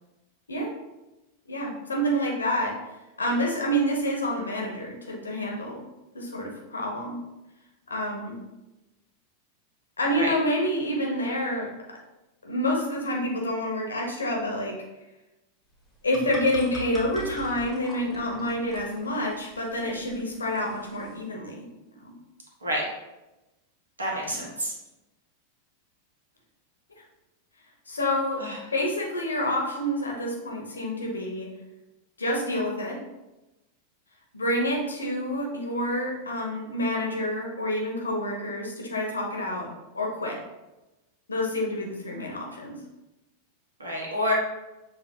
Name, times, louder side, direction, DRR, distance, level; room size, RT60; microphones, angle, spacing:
voice 1, 1.5-2.8 3.2-5.8 6.1-7.2 7.9-8.4 10.0-11.7 12.4-14.8 16.0-21.7 22.0-22.2 24.3-24.4 27.9-28.5 28.7-31.5 32.2-33.0 34.3-40.4 41.3-42.8, equal, 75° left, -1 dB, 1.0 m, -28 dB
sound 1, 15.8-21.2, left 1 dB, ahead, 1.5 m, -44 dB
voice 2, 24.0-24.7 28.4-28.6 43.8-44.3, equal, 75° right, -2 dB, 1.3 m, -28 dB
6.7 x 2.8 x 2.8 m, 1.0 s
figure-of-eight pair, 90°, 0 cm